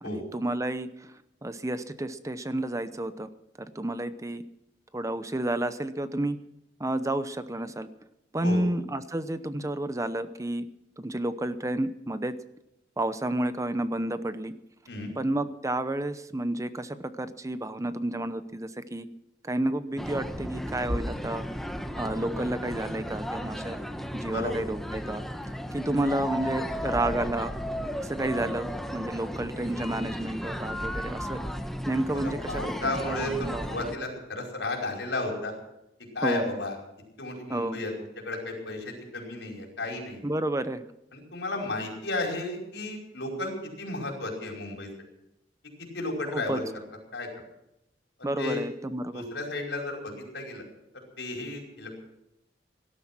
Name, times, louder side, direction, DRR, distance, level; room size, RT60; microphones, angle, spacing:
voice 1, 0.0-1.1 1.4-3.3 3.7-4.4 4.9-6.4 6.8-7.9 8.3-10.7 11.0-12.3 13.0-14.5 15.2-19.1 19.4-21.4 22.0-23.8 24.1-25.2 25.7-27.5 28.0-31.4 31.9-33.7 36.2-36.5 37.5-37.8 40.2-40.8 46.3-46.6 48.2-49.2, right 1 dB, 20° right, 12 dB, 0.8 m, -30 dB
sound 1, 20.0-34.0, equal, ahead, 1.1 m, -34 dB
voice 2, 32.1-35.5 36.1-36.7 37.2-37.9 38.2-40.2 41.1-44.9 45.9-46.7 47.1-47.3 48.2-48.6 49.1-50.6 50.9-51.9, left 2 dB, 90° left, 0 dB, 5.1 m, -33 dB
18.0 x 12.5 x 6.1 m, 0.84 s
head